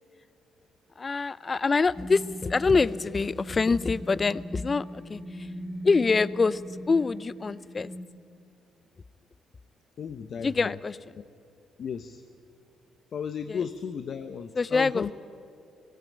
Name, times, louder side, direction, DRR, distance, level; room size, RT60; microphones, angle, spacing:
voice 1, 1.0-5.5 5.8-6.6 6.9-7.9 10.4-11.0 13.5-13.6 14.6-15.1, left 4 dB, 30° left, 20 dB, 0.5 m, -25 dB
sound 1, 1.9-8.0, equal, 55° right, 2.8 m, -40 dB
voice 2, 10.0-10.8 11.8-12.2 13.1-15.1, left 7 dB, 55° left, 10 dB, 0.8 m, -34 dB
18.0 x 17.5 x 8.8 m, 2.4 s
cardioid pair, 90°, 0 cm